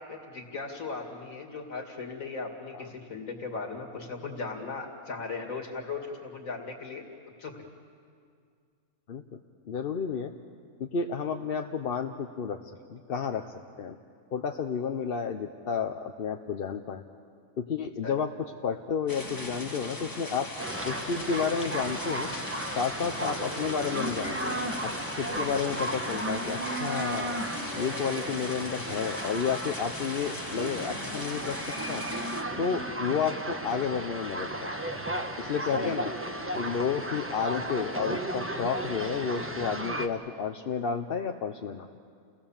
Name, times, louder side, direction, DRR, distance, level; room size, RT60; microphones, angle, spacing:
voice 1, 0.0-7.0 7.4-7.5 18.0-18.2 35.7-36.2, left 4 dB, 65° left, 2 dB, 2.8 m, -37 dB
voice 2, 9.7-10.3 10.8-12.6 12.9-13.9 14.3-17.0 17.6-18.3 18.6-20.5 20.8-22.3 22.8-24.6 24.8-24.9 25.2-27.4 27.8-32.1 32.6-34.7 35.4-36.1 36.5-41.9, left 6 dB, 50° left, 5 dB, 0.8 m, -31 dB
sound 1, 19.1-32.4, left 1 dB, 15° left, 1.5 m, -39 dB
sound 2, 20.6-40.1, right 1 dB, 10° right, 1.0 m, -34 dB
30.0 x 19.0 x 7.2 m, 2.2 s
omnidirectional pair, 1.6 m